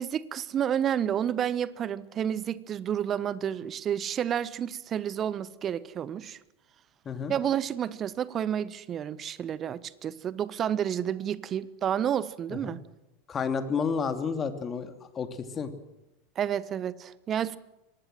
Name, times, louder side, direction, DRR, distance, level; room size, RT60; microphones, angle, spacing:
voice 1, 0.0-6.4 7.3-12.8 16.4-17.6, right 9 dB, 30° right, 18 dB, 1.2 m, -30 dB
voice 2, 13.3-15.7, left 6 dB, 25° left, 7 dB, 2.8 m, -31 dB
24.5 x 19.5 x 7.7 m, 0.92 s
figure-of-eight pair, 80°, 0 cm